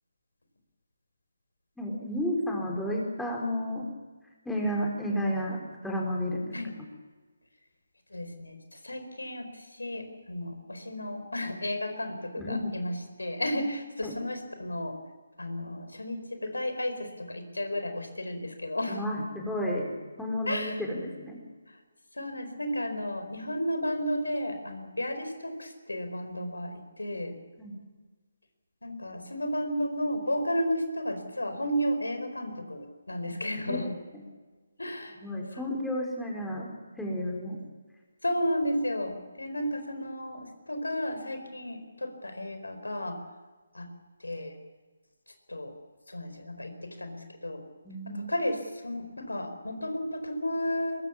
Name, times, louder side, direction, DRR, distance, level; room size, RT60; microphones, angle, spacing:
voice 1, 1.8-3.9 4.4-6.5 12.4-12.6 14.0-14.2 18.9-21.4 27.6-27.7 33.7-33.8 34.1-34.2 35.2-36.7 37.0-37.6 47.8-48.3, equal, 5° left, -2 dB, 4.5 m, -32 dB
voice 2, 8.1-15.0 15.4-19.0 20.5-20.8 22.1-27.4 28.8-33.9 34.8-35.2 35.5-35.7 38.2-43.2 43.7-43.9 44.2-44.5 45.5-45.7 46.1-47.6 48.1-51.0, equal, 90° left, 8 dB, 4.7 m, -33 dB
22.5 x 21.5 x 7.3 m, 1.3 s
figure-of-eight pair, 150°, 0 cm